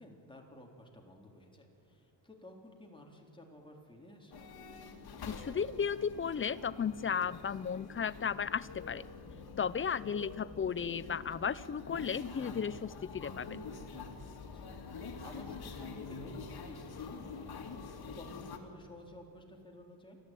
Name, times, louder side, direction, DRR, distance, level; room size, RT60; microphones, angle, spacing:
voice 1, 0.0-4.5 14.4-14.7 15.0-17.6 18.0-20.2, left 1 dB, 10° left, 0 dB, 3.7 m, -53 dB
sound 1, 4.3-18.6, left 4 dB, 55° left, 2.7 m, -46 dB
voice 2, 5.3-9.0 9.6-13.6, left 7 dB, 30° left, 17 dB, 0.6 m, -35 dB
29.0 x 13.0 x 9.1 m, 2.6 s
cardioid pair, 100°, 45 cm